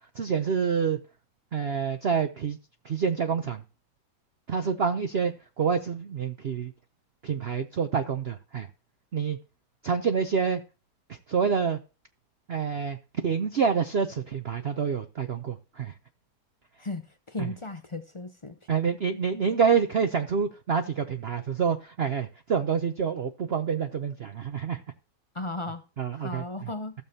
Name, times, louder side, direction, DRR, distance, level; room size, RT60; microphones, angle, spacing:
voice 1, 0.2-1.0 1.5-2.6 2.8-3.6 4.5-6.7 7.2-8.7 9.1-9.4 9.8-10.6 11.1-11.8 12.5-13.0 13.2-15.9 18.7-24.8 26.0-26.4, right 6 dB, 55° right, 0.7 m, -27 dB
voice 2, 16.8-18.6 25.3-25.8 26.1-26.9, left 2 dB, 55° left, 0.3 m, -36 dB
15.5 x 7.1 x 2.8 m
omnidirectional pair, 1.8 m